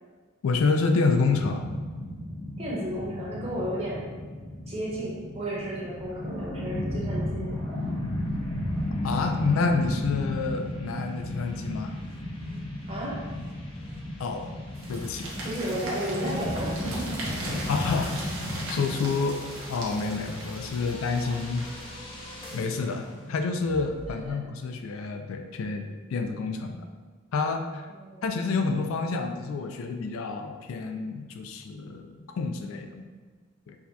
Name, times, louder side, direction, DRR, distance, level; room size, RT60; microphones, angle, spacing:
voice 1, 0.4-1.6 9.0-12.0 14.2-14.5 14.9-15.3 17.7-18.2 18.7-21.6 22.5-26.8 27.3-27.9 28.2-33.0 33.7-33.8, left 4 dB, 75° left, 5 dB, 0.3 m, -28 dB
sound 1, 1.3-18.8, left 1 dB, ahead, 0.9 m, -33 dB
voice 2, 2.6-4.1 4.7-7.6 12.9-13.2 15.4-17.6 24.2-24.4 27.9-28.2, right 1 dB, 30° right, -6 dB, 0.9 m, -33 dB
sound 2, 7.4-24.3, left 1 dB, 25° left, 0.5 m, -46 dB
sound 3, 14.7-21.9, right 1 dB, 65° right, 0.9 m, -39 dB
4.6 x 2.2 x 2.8 m, 1.5 s
head